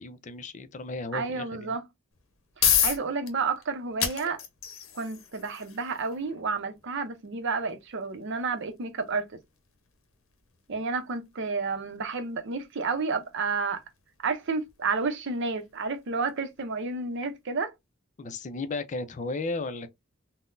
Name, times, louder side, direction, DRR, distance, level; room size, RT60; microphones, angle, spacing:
voice 1, 0.0-1.8 18.2-19.9, left 3 dB, 35° left, 0.4 m, -34 dB
voice 2, 1.1-1.8 2.6-4.4 4.9-9.3 10.7-13.8 14.2-17.7, right 4 dB, 60° right, 0.6 m, -31 dB
sound 1, 2.1-17.0, left 8 dB, 75° left, 0.7 m, -35 dB
3.8 x 2.1 x 2.5 m
head